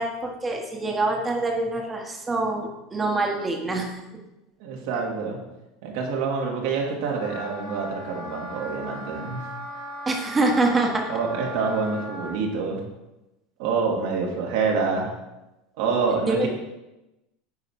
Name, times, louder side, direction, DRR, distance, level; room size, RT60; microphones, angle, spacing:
voice 1, 0.0-4.0 10.0-11.0 16.3-16.5, right 2 dB, 15° right, 2 dB, 1.6 m, -25 dB
voice 2, 4.6-5.4 5.8-9.4 11.1-12.8 13.6-15.1 15.8-16.5, right 5 dB, 65° right, -1 dB, 2.4 m, -26 dB
Wind instrument woodwind instrument, 7.1-12.4, left 1 dB, 70° left, 3.1 m, -38 dB
9.5 x 4.3 x 6.3 m, 0.98 s
supercardioid pair, 135°, 0 cm